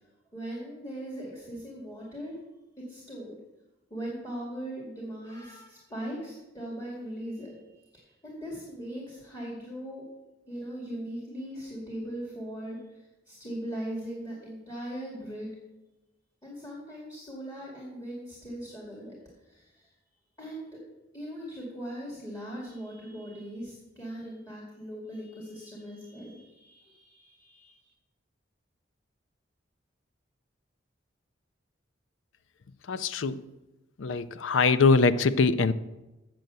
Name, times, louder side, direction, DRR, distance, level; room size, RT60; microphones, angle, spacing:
voice 1, 0.3-2.4 2.8-3.4 3.9-7.6 7.9-10.1 10.5-15.5 16.4-19.9 20.4-20.8 21.1-27.9, right 1 dB, 20° left, -4 dB, 2.1 m, -39 dB
voice 2, 32.9-33.4 34.0-35.7, left 4 dB, 80° left, 14 dB, 0.5 m, -23 dB
7.7 x 7.6 x 6.8 m, 1.0 s
head